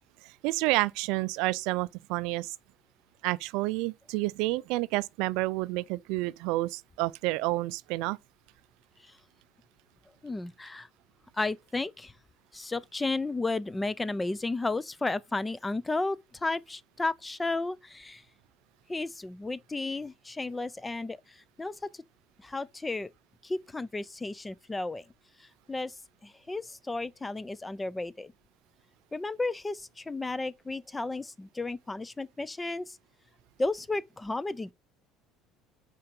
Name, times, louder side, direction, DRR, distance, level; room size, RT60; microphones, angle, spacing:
voice 1, 0.2-2.5 3.2-8.2, right 20 dB, 75° right, 0.3 m, -29 dB
voice 2, 10.2-10.9 11.3-12.1 12.5-18.2 18.9-22.0 22.4-23.1 23.4-25.0 25.4-26.0 26.2-28.3 29.1-33.0 33.6-34.7, left 3 dB, 15° left, 0.5 m, -33 dB
5.6 x 4.5 x 5.3 m
supercardioid pair, 85°, 0 cm